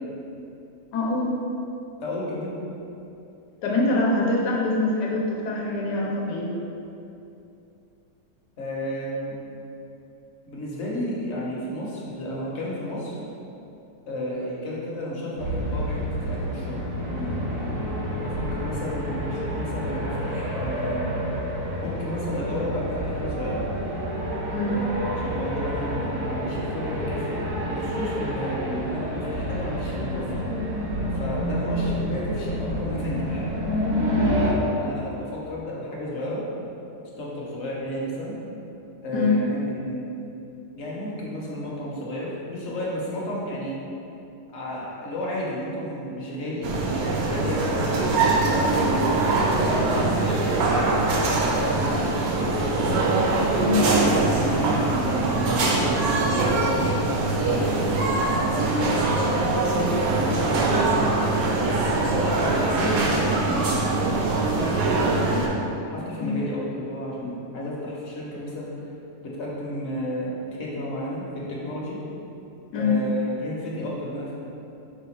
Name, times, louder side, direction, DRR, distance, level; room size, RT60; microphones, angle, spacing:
voice 1, 0.9-1.3 3.6-6.5 24.5-24.8 34.1-34.4 39.1-39.3 53.6-53.9 66.2-66.3 72.7-73.0, left 3 dB, 85° left, -3 dB, 1.2 m, -24 dB
voice 2, 2.0-2.5 8.6-9.4 10.5-13.2 14.1-17.4 18.1-21.1 21.8-23.6 24.7-27.4 27.7-30.6 31.1-33.4 34.5-36.4 37.2-38.3 39.0-40.1 40.8-43.8 44.5-48.3 48.7-49.0 49.4-50.5 50.8-53.0 53.7-57.0 57.4-61.2 61.6-64.1 64.6-65.5 65.9-68.7 69.2-70.3 70.6-72.0 72.7-74.3, left 1 dB, 55° left, -5 dB, 0.9 m, -32 dB
sound 1, 15.4-34.5, equal, 55° right, 0.7 m, -29 dB
sound 2, 46.6-65.5, right 2 dB, 70° right, 1.0 m, -23 dB
4.8 x 2.2 x 4.2 m, 2.8 s
omnidirectional pair, 1.7 m